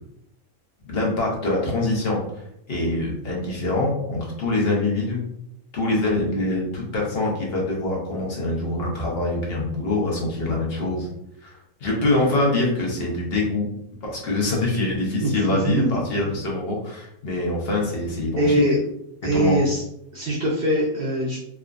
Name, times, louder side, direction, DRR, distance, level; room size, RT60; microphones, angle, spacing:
voice 1, 0.8-5.2 5.7-11.1 11.4-13.7 14.0-18.6 19.3-19.6, left 2 dB, 50° left, -2 dB, 0.9 m, -24 dB
voice 2, 18.4-18.8 19.2-19.8 20.1-21.4, right 1 dB, 70° right, -4 dB, 0.5 m, -21 dB
3.3 x 2.1 x 2.4 m, 0.79 s
omnidirectional pair, 1.5 m